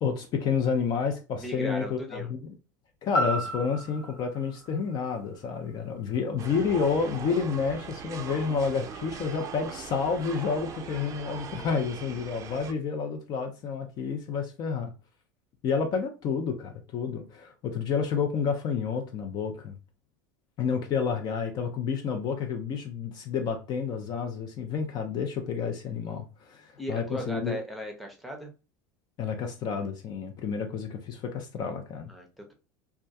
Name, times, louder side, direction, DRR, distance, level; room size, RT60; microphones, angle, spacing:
voice 1, 0.0-2.6 3.0-14.9 15.6-19.7 20.6-27.6 29.2-32.1, left 6 dB, 45° left, 0.5 m, -30 dB
voice 2, 1.4-2.3 26.8-28.5 32.1-32.5, equal, ahead, 0.7 m, -37 dB
sound 1, 3.1-7.2 7.7-7.8, equal, 80° left, 1.2 m, -35 dB
sound 2, 6.4-12.7, right 7 dB, 35° right, 0.4 m, -40 dB
2.3 x 2.1 x 2.6 m
hypercardioid pair, 100°, 10 cm